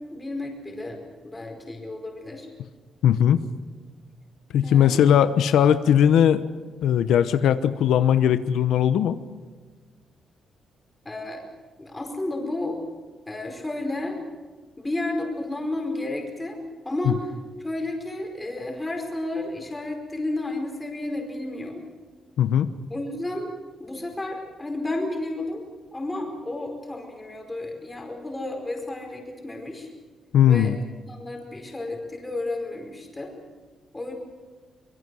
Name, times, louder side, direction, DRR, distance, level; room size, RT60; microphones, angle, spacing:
voice 1, 0.1-1.0 1.2-2.5 4.6-5.0 11.0-11.4 11.8-12.8 13.3-14.2 14.8-16.6 16.8-17.2 17.6-21.8 22.9-23.5 23.8-25.6 25.9-29.9 30.5-30.7 31.1-33.3 33.9-34.1, left 2 dB, 10° left, 2 dB, 4.9 m, -32 dB
voice 2, 3.0-3.4 4.5-6.4 6.8-9.2 17.0-17.1 22.4-22.7 30.3-30.8, left 9 dB, 85° left, 11 dB, 0.9 m, -19 dB
24.5 x 23.0 x 6.3 m, 1.4 s
cardioid pair, 160°, 0 cm